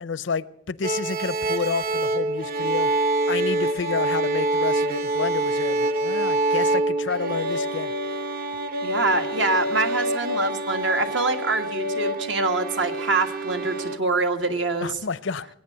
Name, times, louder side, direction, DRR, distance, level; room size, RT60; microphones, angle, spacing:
voice 1, 0.0-2.9 3.3-7.9 14.8-15.5, left 5 dB, 75° left, 0.6 m, -30 dB
sound 1, 0.8-14.0, right 1 dB, 50° right, 0.9 m, -26 dB
voice 2, 8.8-15.0, right 3 dB, 70° right, 1.5 m, -25 dB
21.0 x 8.8 x 7.8 m
head